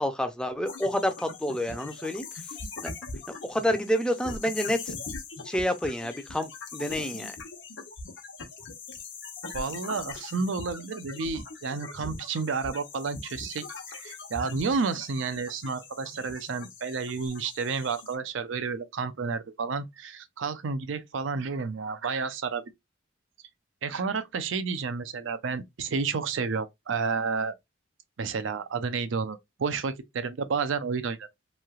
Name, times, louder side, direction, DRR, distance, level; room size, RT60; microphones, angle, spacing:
voice 1, 0.0-2.6 2.8-2.9 3.3-4.9 5.4-7.4, equal, 5° left, 0.4 m, -29 dB
sound 1, 0.7-18.2, left 4 dB, 70° left, 0.9 m, -41 dB
voice 2, 9.5-22.6 23.8-27.5 28.2-31.3, right 5 dB, 80° right, 0.5 m, -31 dB
3.1 x 2.7 x 2.3 m
head